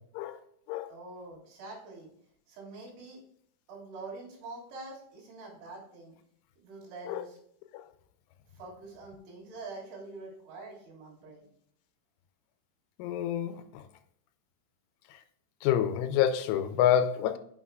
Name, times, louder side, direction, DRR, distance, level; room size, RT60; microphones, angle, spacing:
voice 1, 0.9-2.1 2.5-3.2 3.7-6.2 6.6-7.4 8.5-11.5, right 3 dB, 75° right, -3 dB, 5.5 m, -45 dB
voice 2, 13.0-13.8 15.6-17.4, left 10 dB, 85° left, 9 dB, 3.1 m, -27 dB
9.6 x 6.2 x 2.3 m, 0.67 s
omnidirectional pair, 5.5 m